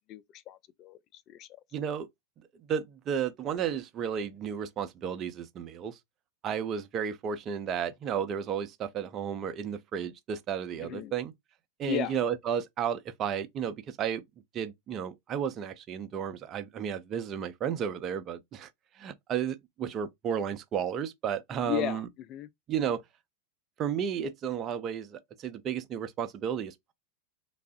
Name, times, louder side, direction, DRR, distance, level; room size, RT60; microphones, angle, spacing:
voice 1, 0.1-1.5 10.8-11.1 11.9-12.2 21.7-22.0 22.3-22.5, left 13 dB, 40° left, 0.4 m, -35 dB
voice 2, 1.7-2.1 2.7-6.0 6.4-11.3 11.8-14.2 14.5-18.7 19.0-22.1 22.7-23.0 23.8-26.9, right 8 dB, 35° right, 0.5 m, -33 dB
3.4 x 2.0 x 2.3 m
hypercardioid pair, 95°, 0 cm